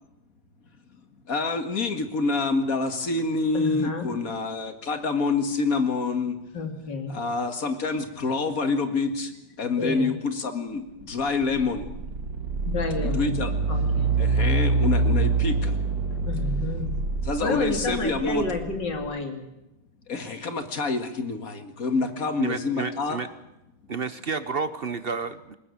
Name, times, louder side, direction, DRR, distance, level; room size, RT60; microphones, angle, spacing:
voice 1, 1.3-6.4 7.1-9.3 9.6-11.9 13.0-13.5 14.2-15.8 17.3-18.4 20.1-23.2, left 3 dB, 50° left, 8 dB, 2.2 m, -27 dB
voice 2, 3.5-4.1 6.5-7.2 9.8-10.1 12.7-13.4 13.7-14.1 16.2-16.9 17.4-19.5, left 3 dB, 75° left, 5 dB, 3.4 m, -30 dB
sound 1, 11.0-19.0, right 3 dB, 75° right, 2.5 m, -26 dB
voice 3, 22.4-23.3 23.9-25.5, right 4 dB, 45° right, 13 dB, 0.8 m, -31 dB
21.0 x 19.0 x 8.5 m, 0.92 s
omnidirectional pair, 2.0 m